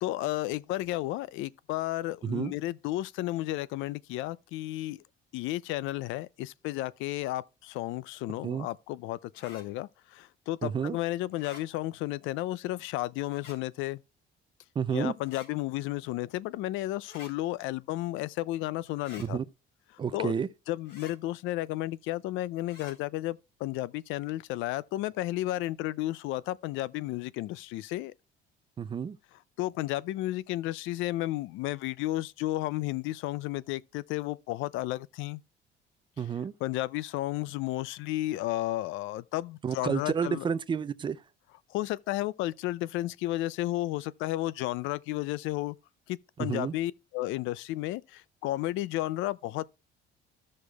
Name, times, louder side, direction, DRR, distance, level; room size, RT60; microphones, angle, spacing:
voice 1, 0.0-5.0 5.3-14.0 14.9-19.4 20.1-20.3 20.7-28.1 29.6-35.4 36.6-40.5 41.7-45.8 46.1-49.6, left 16 dB, 80° left, 0.4 m, -33 dB
voice 2, 2.2-2.5 8.4-8.7 10.6-11.0 14.8-15.1 19.2-19.4 20.0-20.5 28.8-29.2 36.2-36.5 39.6-41.2 46.4-46.7, right 7 dB, 25° right, 0.4 m, -30 dB
sound 1, 9.3-9.6 11.3-11.6 13.3-13.6 15.2-15.5 17.0-17.3 19.0-19.3 20.8-21.1 22.6-22.9, left 4 dB, 55° left, 3.7 m, -49 dB
14.0 x 6.5 x 2.3 m
cardioid pair, 140°, 20 cm